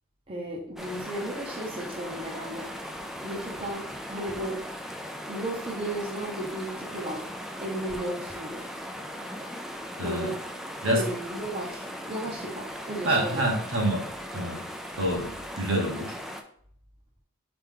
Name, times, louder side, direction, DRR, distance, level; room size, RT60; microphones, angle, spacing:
voice 1, 0.3-2.7 3.2-4.6 5.3-7.3 7.6-8.7 10.0-10.4 10.9-13.5, right 1 dB, 25° right, -2 dB, 0.7 m, -35 dB
sound 1, 0.8-16.4, equal, ahead, 0.3 m, -38 dB
voice 2, 10.0-10.3 10.8-11.0 13.0-14.0 14.3-14.6 15.0-16.1, right 1 dB, 65° right, -1 dB, 1.3 m, -27 dB
4.3 x 3.4 x 3.7 m, 0.63 s
head